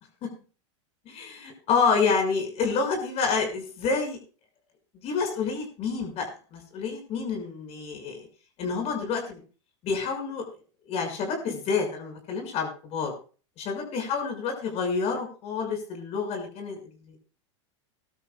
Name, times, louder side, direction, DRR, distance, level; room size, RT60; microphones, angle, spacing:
voice 1, 1.1-4.2 5.0-8.3 8.6-9.4 9.8-10.4 10.9-13.1 13.6-16.8 17.1-17.2, left 5 dB, 45° left, 4 dB, 5.8 m, -28 dB
20.5 x 12.0 x 2.3 m, 0.37 s
hypercardioid pair, 110°, 15 cm